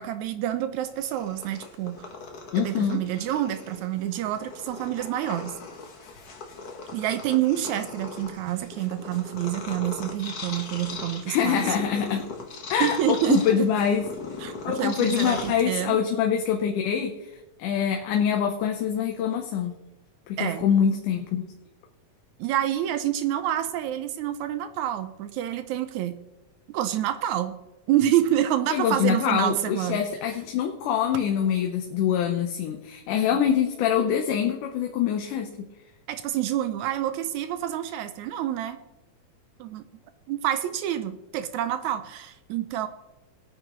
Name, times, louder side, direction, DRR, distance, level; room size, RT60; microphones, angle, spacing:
voice 1, 0.0-2.1 2.5-5.6 6.9-11.7 12.8-13.7 14.4-16.0 20.4-20.6 22.4-26.2 26.7-27.5 27.9-30.0 33.2-33.4 36.1-38.8 39.6-39.9 40.3-42.9, right 12 dB, 80° right, 10 dB, 1.8 m, -27 dB
Purr, 0.9-16.0, left 4 dB, 50° left, 1.1 m, -39 dB
voice 2, 2.5-3.0 11.3-12.2 12.7-14.0 14.6-17.1 17.6-19.7 20.3-21.5 28.7-35.7, left 8 dB, 90° left, 3 dB, 2.4 m, -25 dB
20.0 x 9.0 x 3.1 m, 1.0 s
omnidirectional pair, 3.5 m